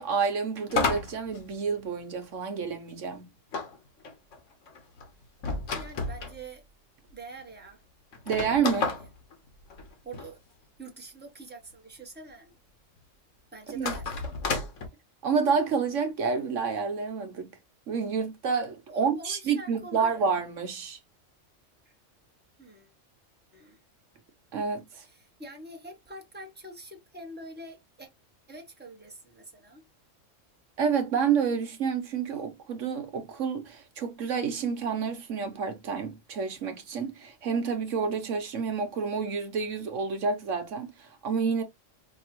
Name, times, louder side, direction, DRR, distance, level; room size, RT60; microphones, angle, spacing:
voice 1, 0.0-3.3 8.3-8.9 13.7-13.9 15.2-17.5 17.9-21.0 24.5-25.0 30.8-41.6, right 6 dB, 75° right, 1.3 m, -29 dB
sound 1, 0.7-2.2 3.5-6.4 7.1-7.2 7.4-7.5 8.1-10.3 13.7-14.9, left 4 dB, 75° left, 1.5 m, -32 dB
voice 2, 5.7-6.6 7.1-7.8 8.7-9.1 10.0-10.4 10.8-12.6 13.5-14.3 18.9-20.1 21.8-21.9 22.6-22.9 23.5-23.8 24.9-28.1 28.5-29.9, right 2 dB, 10° right, 1.2 m, -45 dB
5.2 x 2.7 x 3.0 m
omnidirectional pair, 1.3 m